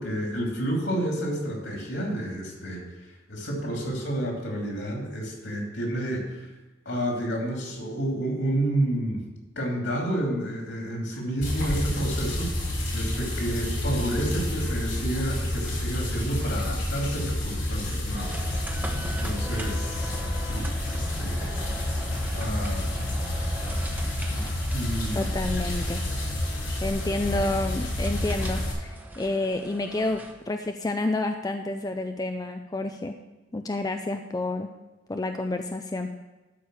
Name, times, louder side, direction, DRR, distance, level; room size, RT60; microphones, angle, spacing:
voice 1, 0.0-6.5 6.8-9.2 9.6-12.5 12.9-18.4 19.1-21.5 22.3-22.9 24.3-24.4 24.7-25.3, right 1 dB, 65° left, 0 dB, 3.0 m, -30 dB
sound 1, 11.4-28.7, left 1 dB, 85° left, 3.7 m, -29 dB
sound 2, 18.1-30.3, right 1 dB, 10° right, 1.0 m, -41 dB
voice 2, 25.1-26.0 26.8-33.2 33.5-34.7 35.1-36.1, left 2 dB, 20° left, 5 dB, 0.4 m, -29 dB
12.5 x 5.1 x 6.3 m, 1.2 s
head